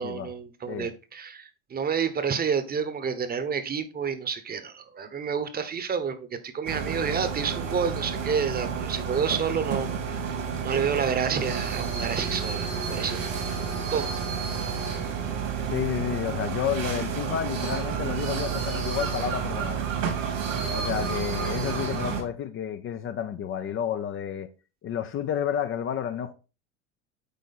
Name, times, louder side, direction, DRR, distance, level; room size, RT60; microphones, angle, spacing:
voice 1, 0.0-13.2 13.9-14.1, right 6 dB, 25° right, 1.0 m, -29 dB
sound 1, 6.7-22.2, right 6 dB, 85° right, 3.7 m, -30 dB
voice 2, 15.7-19.9 20.7-24.5 24.8-26.3, left 9 dB, 35° left, 0.7 m, -30 dB
8.3 x 4.5 x 4.1 m
supercardioid pair, 105°, 37 cm